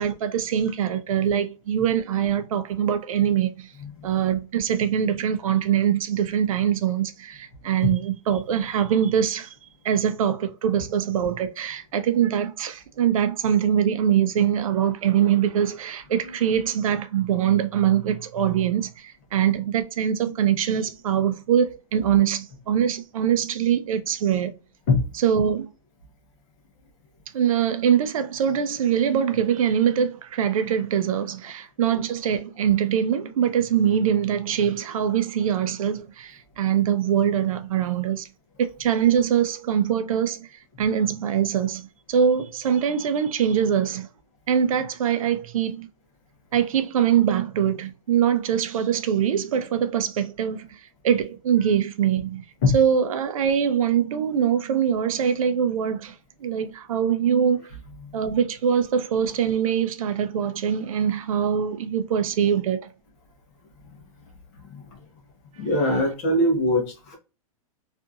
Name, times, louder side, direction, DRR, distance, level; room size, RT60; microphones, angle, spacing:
voice 1, 0.0-3.7 4.0-9.6 9.8-24.5 25.1-25.7 27.3-38.3 38.6-44.1 44.5-45.9 46.5-52.4 52.7-56.2 56.4-57.6 58.1-62.9, right 8 dB, 70° right, 0.5 m, -23 dB
voice 2, 64.6-65.0 65.6-67.2, left 2 dB, 30° left, 0.8 m, -22 dB
2.7 x 2.5 x 2.3 m
supercardioid pair, 175°, 18 cm